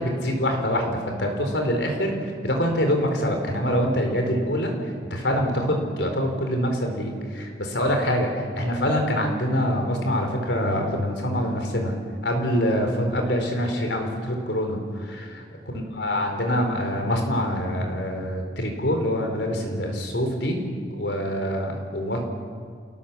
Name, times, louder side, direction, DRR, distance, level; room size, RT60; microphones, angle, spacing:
voice 1, 0.0-11.9 12.2-20.6 20.9-22.2, equal, 85° left, 3 dB, 4.3 m, -25 dB
29.0 x 18.0 x 7.4 m, 2.1 s
head